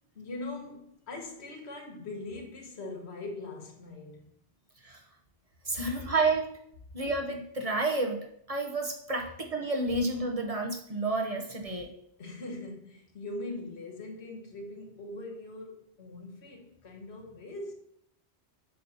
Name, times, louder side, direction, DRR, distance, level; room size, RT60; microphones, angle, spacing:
voice 1, 0.1-4.3 12.2-17.7, left 2 dB, 90° left, 1.4 m, -41 dB
voice 2, 5.7-6.5 6.9-11.9, right 2 dB, 40° right, 0.8 m, -30 dB
7.6 x 2.8 x 5.4 m
omnidirectional pair, 1.1 m